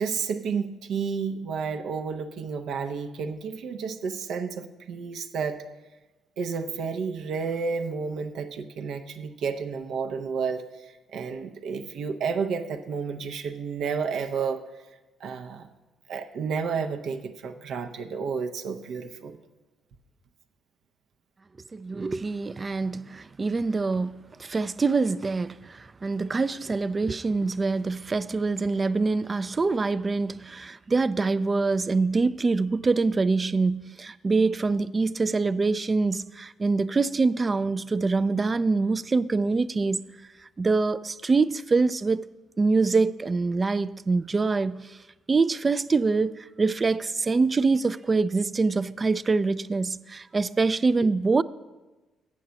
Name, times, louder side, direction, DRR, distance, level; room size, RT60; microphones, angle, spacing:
voice 1, 0.0-5.6 6.4-14.7 15.2-15.7 16.1-19.4, right 5 dB, 75° right, 0.6 m, -31 dB
voice 2, 21.7-40.0 40.6-42.2 42.6-45.0 45.3-51.4, right 3 dB, 30° right, 0.3 m, -25 dB
8.3 x 6.4 x 6.9 m
cardioid pair, 90°, 0 cm